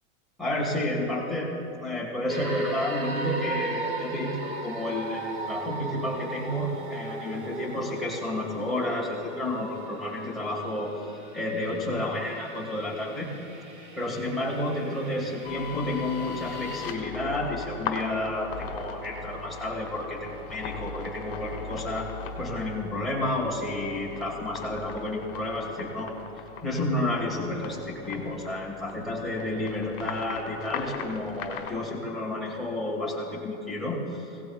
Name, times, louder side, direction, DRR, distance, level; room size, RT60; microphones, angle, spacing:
voice 1, 0.4-1.5 1.8-11.1 11.3-13.3 14.0-26.1 26.6-34.3, left 1 dB, ahead, -5 dB, 1.5 m, -31 dB
sound 1, 2.3-16.9, right 3 dB, 15° right, 0.8 m, -38 dB
sound 2, 15.4-31.8, left 5 dB, 40° left, 1.6 m, -39 dB
23.5 x 17.5 x 2.3 m, 3.0 s
supercardioid pair, 175°, 44 cm